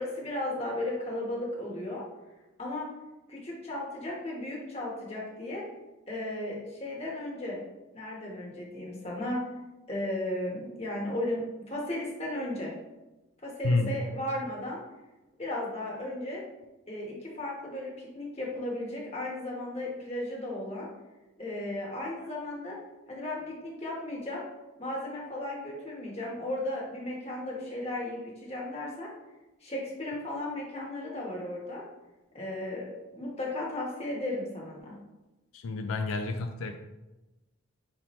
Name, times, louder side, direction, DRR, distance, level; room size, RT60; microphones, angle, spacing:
voice 1, 0.0-2.0 2.6-2.9 3.3-5.7 6.1-7.6 7.9-9.4 9.9-12.7 13.4-14.8 15.4-16.4 16.9-20.9 21.4-22.8 23.1-24.4 24.8-29.1 29.6-31.8 32.3-35.0, left 1 dB, 30° left, -3 dB, 1.0 m, -35 dB
voice 2, 13.6-14.0 35.5-36.8, left 3 dB, 80° left, 5 dB, 0.4 m, -29 dB
5.4 x 2.9 x 3.0 m, 1.1 s
head